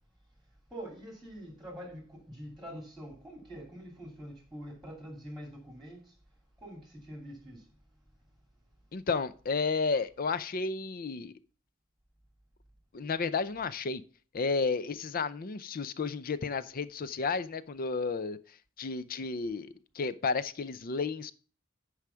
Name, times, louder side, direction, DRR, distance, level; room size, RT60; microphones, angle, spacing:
voice 1, 0.7-6.1 6.6-7.6, equal, ahead, 2.6 m, -45 dB
voice 2, 8.9-11.3 12.9-14.0 14.3-21.3, left 4 dB, 45° left, 0.5 m, -32 dB
9.5 x 4.9 x 5.6 m
head